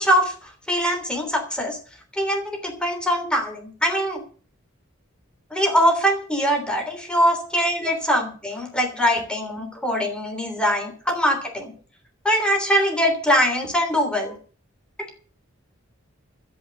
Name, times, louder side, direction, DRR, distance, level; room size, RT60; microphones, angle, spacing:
voice 1, 0.0-1.8 2.1-4.2 5.5-11.7 12.2-14.4, equal, 5° left, 3 dB, 3.2 m, -22 dB
13.0 x 8.8 x 7.7 m, 0.41 s
head